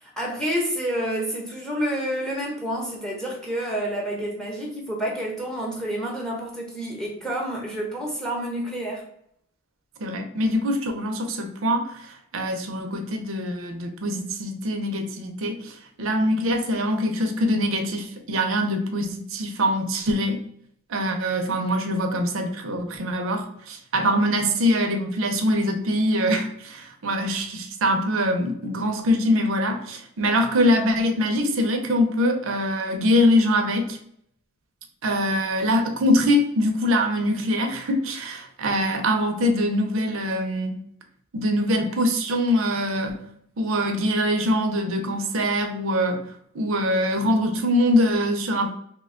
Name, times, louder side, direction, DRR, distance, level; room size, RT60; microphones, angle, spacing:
voice 1, 0.0-9.0, right 1 dB, 5° left, -2 dB, 0.6 m, -29 dB
voice 2, 10.0-20.4 20.9-34.0 35.0-40.8 41.3-43.2 43.6-48.7, equal, 65° right, 5 dB, 0.6 m, -23 dB
2.9 x 2.2 x 3.6 m, 0.70 s
head